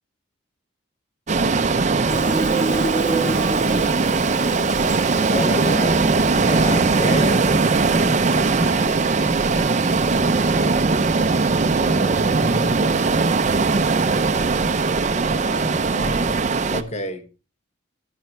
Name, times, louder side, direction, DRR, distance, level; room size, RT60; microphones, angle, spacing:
sound 1, 1.3-16.8, right 4 dB, 35° right, 0.5 m, -20 dB
Fill (with liquid), 2.1-15.2, right 1 dB, 20° left, 2.1 m, -31 dB
voice 1, 5.3-7.6 8.5-9.4 11.6-13.7 15.2-17.3, left 1 dB, 35° left, 1.2 m, -32 dB
10.5 x 10.0 x 3.2 m
head